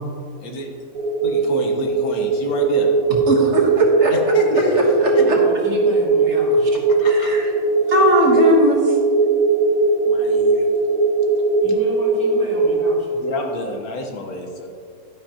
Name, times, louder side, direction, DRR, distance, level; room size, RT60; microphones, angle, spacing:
sound 1, 0.9-12.9, right 3 dB, 85° right, 1.2 m, -19 dB
voice 1, 1.2-2.9 4.1-4.8 7.0-7.4 10.1-10.5 13.2-14.7, left 1 dB, 90° left, 2 dB, 1.7 m, -28 dB
voice 2, 3.3-4.1 5.0-5.4 6.3-6.4 7.1-7.5 7.9-8.8, right 1 dB, 55° right, -1 dB, 1.6 m, -18 dB
voice 3, 5.1-6.8 11.6-13.2, equal, 5° left, -7 dB, 2.6 m, -33 dB
11.5 x 10.0 x 2.9 m, 2.2 s
omnidirectional pair, 1.5 m